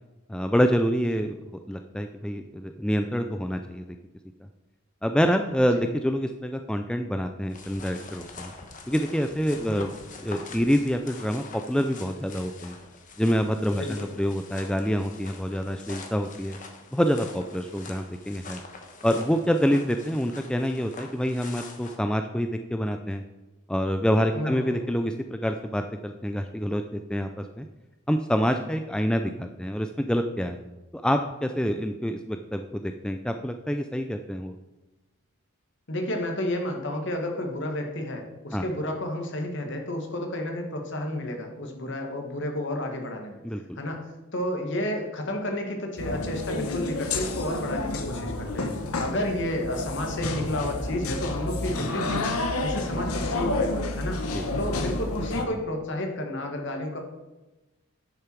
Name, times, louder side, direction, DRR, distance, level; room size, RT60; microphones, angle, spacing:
voice 1, 0.3-1.4 1.7-3.9 5.0-8.5 8.9-9.9 10.2-12.8 13.2-16.6 16.9-18.6 19.0-23.2 23.7-27.7 28.1-30.6 30.9-34.5 38.5-38.6 43.4-43.8 54.3-54.5, equal, 5° left, 6 dB, 0.3 m, -26 dB
sound 1, 7.5-22.0, left 3 dB, 35° left, 1.2 m, -44 dB
voice 2, 24.3-24.8 35.9-43.4 43.8-44.0 44.3-48.7 49.0-54.2 54.6-57.0, left 1 dB, 55° left, 3 dB, 1.7 m, -31 dB
sound 2, 46.0-55.5, left 2 dB, 85° left, 1.1 m, -30 dB
10.5 x 6.8 x 4.6 m, 1.1 s
head